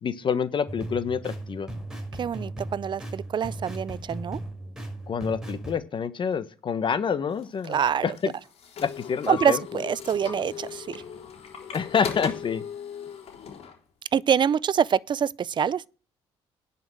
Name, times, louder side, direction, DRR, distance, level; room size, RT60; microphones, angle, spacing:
voice 1, 0.0-1.7 5.1-8.3 8.8-9.8 11.7-12.6, left 6 dB, 45° left, 1.3 m, -27 dB
sound 1, 0.7-5.8, right 1 dB, 5° right, 5.9 m, -37 dB
voice 2, 2.2-4.4 7.7-8.0 9.3-11.0 14.1-15.9, right 8 dB, 45° right, 0.5 m, -25 dB
sound 2, 7.4-13.8, left 8 dB, 60° left, 3.8 m, -38 dB
10.5 x 5.8 x 7.8 m
cardioid pair, 80°, 11 cm